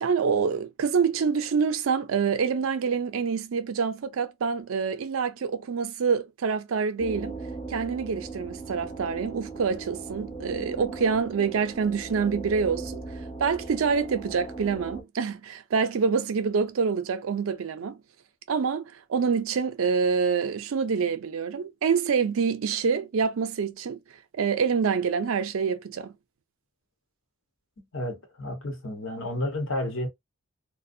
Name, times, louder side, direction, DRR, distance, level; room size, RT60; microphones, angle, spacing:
voice 1, 0.0-7.4 7.7-13.0 13.4-18.0 18.5-24.0 24.3-26.1, right 5 dB, 75° right, 0.4 m, -26 dB
sound 1, 7.0-15.0, right 3 dB, 20° left, 0.8 m, -38 dB
voice 2, 27.9-30.1, left 1 dB, 65° left, 0.9 m, -31 dB
2.5 x 2.1 x 2.6 m
head